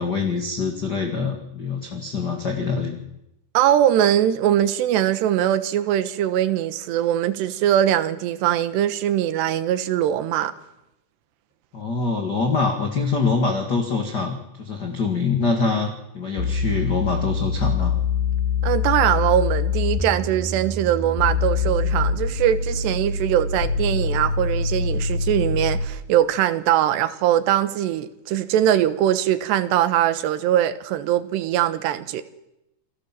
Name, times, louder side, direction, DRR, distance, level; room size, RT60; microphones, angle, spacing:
voice 1, 0.0-3.0 11.7-15.9 16.1-17.9, left 4 dB, 35° left, 1.7 m, -24 dB
voice 2, 3.5-10.5 18.6-32.2, right 11 dB, 80° right, 3.3 m, -21 dB
sound 1, 16.4-26.0, left 4 dB, 65° left, 6.8 m, -24 dB
28.5 x 18.5 x 7.5 m
omnidirectional pair, 4.9 m